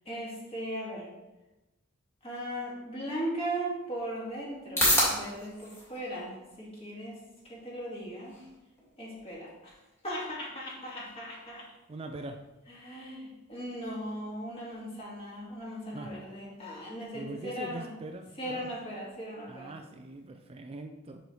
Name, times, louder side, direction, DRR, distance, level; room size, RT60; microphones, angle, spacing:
voice 1, 0.1-1.1 2.2-7.2 7.5-8.4 9.0-9.7 10.0-11.6 12.7-17.9 18.4-19.7, right 1 dB, 30° left, -5 dB, 2.2 m, -38 dB
sound 1, 3.3-20.2, equal, 15° left, 2.3 m, -38 dB
voice 2, 11.9-12.4 15.9-16.1 17.1-18.7 19.5-21.2, right 2 dB, 30° right, 5 dB, 0.4 m, -42 dB
6.7 x 6.1 x 3.3 m, 1.0 s
head